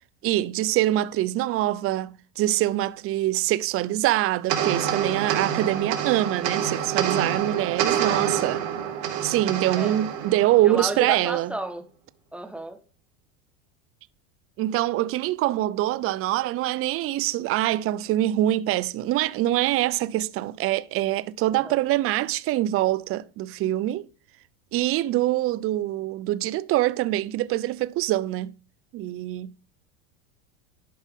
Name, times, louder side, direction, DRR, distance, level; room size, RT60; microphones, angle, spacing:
voice 1, 0.2-8.6 9.2-11.5 14.6-24.1 24.7-28.6 28.9-29.5, right 15 dB, 35° right, 0.5 m, -24 dB
sound 1, 4.5-11.1, right 8 dB, 80° right, 1.5 m, -27 dB
voice 2, 10.6-11.8 12.3-12.8 21.6-21.8, right 1 dB, 5° right, 1.1 m, -32 dB
11.0 x 5.3 x 3.6 m
supercardioid pair, 110°, 39 cm